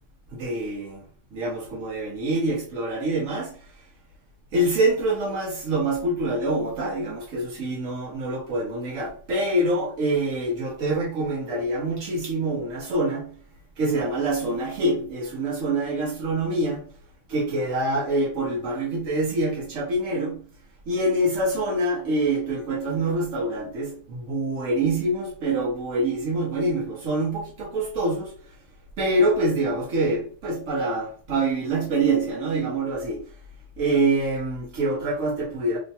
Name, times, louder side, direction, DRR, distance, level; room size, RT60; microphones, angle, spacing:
voice 1, 0.3-1.0 1.3-3.6 4.5-13.3 13.8-16.8 17.3-20.4 20.9-28.3 29.0-33.2 33.8-35.8, right 2 dB, 85° right, 1.2 m, -25 dB
3.1 x 2.2 x 4.0 m
omnidirectional pair, 1.3 m